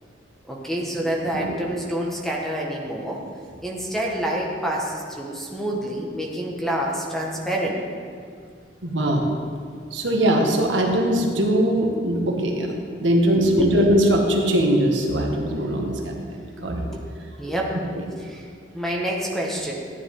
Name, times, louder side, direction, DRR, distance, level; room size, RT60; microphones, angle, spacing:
voice 1, 0.5-3.2 3.6-7.8 13.5-13.7 16.9-17.0 17.4-17.8 18.3-18.4 18.7-19.7, right 1 dB, ahead, -2 dB, 1.4 m, -27 dB
voice 2, 8.8-9.3 9.9-12.7 13.0-16.9, equal, 80° right, 1 dB, 1.6 m, -21 dB
14.0 x 9.6 x 3.7 m, 2.2 s
head